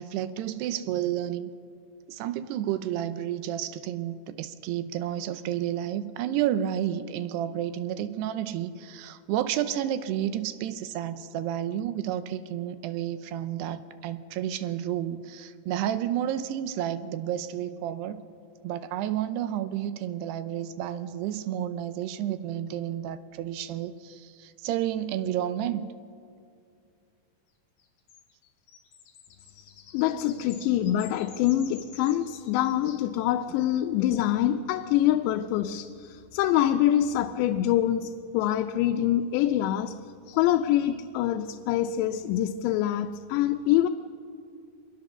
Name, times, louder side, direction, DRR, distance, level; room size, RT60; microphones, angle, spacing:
voice 1, 0.0-1.5 2.1-18.2 18.6-25.9, right 11 dB, 80° right, 12 dB, 2.7 m, -31 dB
sound 1, 27.8-32.9, left 7 dB, 60° left, 3.4 m, -50 dB
voice 2, 29.9-40.0 40.3-43.9, left 12 dB, 90° left, 6 dB, 2.9 m, -25 dB
24.0 x 21.5 x 6.8 m, 2.4 s
omnidirectional pair, 5.0 m